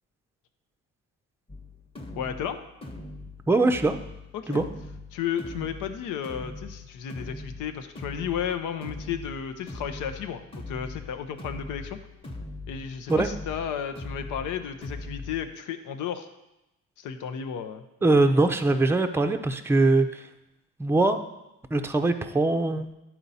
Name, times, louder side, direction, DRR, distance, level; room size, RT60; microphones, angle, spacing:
sound 1, 1.5-15.5, left 2 dB, 20° left, 1.0 m, -41 dB
voice 1, 2.2-2.6 4.3-4.6 5.1-12.0 12.7-16.3 17.0-17.8, left 8 dB, 90° left, 8 dB, 0.7 m, -33 dB
voice 2, 3.5-4.0 4.5-4.7 13.1-13.3 18.0-20.2 20.8-21.2 21.7-22.9, right 2 dB, 10° right, 6 dB, 0.5 m, -22 dB
11.0 x 4.4 x 4.1 m, 0.93 s
cardioid pair, 90°, 30 cm